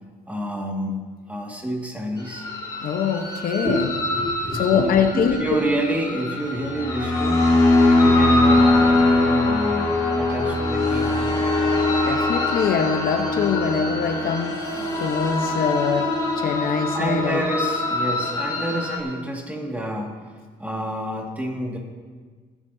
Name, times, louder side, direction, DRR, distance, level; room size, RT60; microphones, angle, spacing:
voice 1, 0.3-1.0 1.3-2.5 3.6-7.4 7.7-11.3 14.8-14.9 16.9-20.2 20.6-21.8, right 1 dB, 10° right, 0 dB, 2.0 m, -28 dB
sound 1, 2.2-19.0, left 2 dB, 25° left, 2.9 m, -22 dB
voice 2, 2.8-3.9 4.5-5.4 12.0-16.1 16.4-17.4, left 6 dB, 60° left, 5 dB, 1.0 m, -23 dB
20.5 x 9.5 x 2.7 m, 1.5 s
cardioid pair, 110°, 17 cm